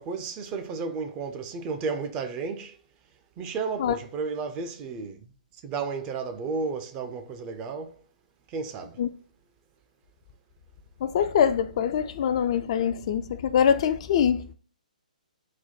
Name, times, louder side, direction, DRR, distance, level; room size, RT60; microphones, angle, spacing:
voice 1, 0.0-2.8 3.4-5.3 5.6-8.0 8.5-9.0, right 4 dB, 25° right, 0.5 m, -33 dB
voice 2, 11.0-14.5, left 8 dB, 45° left, 0.3 m, -24 dB
4.1 x 2.2 x 4.1 m
figure-of-eight pair, 130°, 4 cm